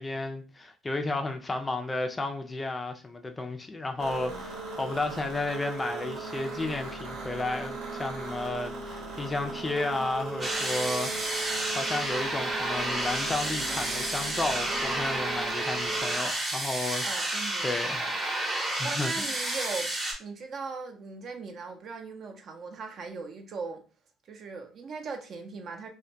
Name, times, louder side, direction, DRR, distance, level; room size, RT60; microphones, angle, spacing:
voice 1, 0.0-11.4 11.7-17.3 17.6-18.2 18.6-19.3, left 2 dB, 20° left, 0.3 m, -33 dB
sound 1, 4.0-16.2, right 3 dB, 75° right, 0.9 m, -38 dB
sound 2, 10.4-20.1, right 1 dB, 20° right, 0.7 m, -31 dB
voice 2, 17.0-18.2 18.8-19.9 20.2-23.8 24.3-25.9, right 4 dB, 50° right, 0.5 m, -39 dB
2.2 x 2.1 x 2.6 m
cardioid pair, 95°, 0 cm